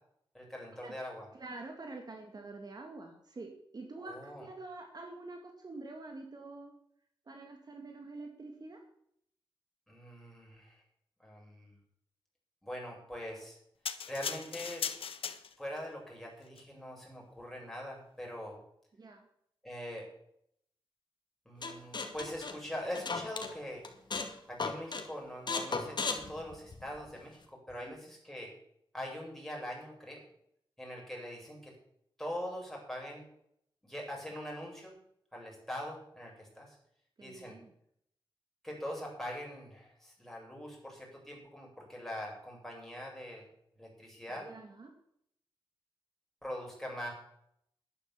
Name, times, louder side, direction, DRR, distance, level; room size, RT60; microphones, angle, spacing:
voice 1, 0.3-1.2 4.0-4.5 9.9-10.8 11.2-11.7 12.6-13.6 14.1-14.8 15.6-18.6 19.6-20.1 21.5-23.8 24.5-28.5 28.9-30.2 30.8-31.7 32.2-33.2 33.8-35.0 35.3-36.8 37.2-37.6 38.6-43.5 43.8-44.5 46.4-47.1, equal, 5° left, -2 dB, 7.3 m, -42 dB
voice 2, 1.3-6.7 7.3-8.8 18.9-19.3 27.8-27.9 37.2-37.7 44.3-44.9, right 3 dB, 45° right, 3 dB, 2.4 m, -47 dB
sound 1, 13.9-15.8 16.5-16.6, left 7 dB, 80° left, 1.2 m, -38 dB
sound 2, 21.6-23.5 23.8-24.3 24.6-25.1 25.5-27.1, left 4 dB, 55° left, 2.1 m, -36 dB
11.0 x 11.0 x 7.2 m, 0.71 s
wide cardioid pair, 90°, 9 cm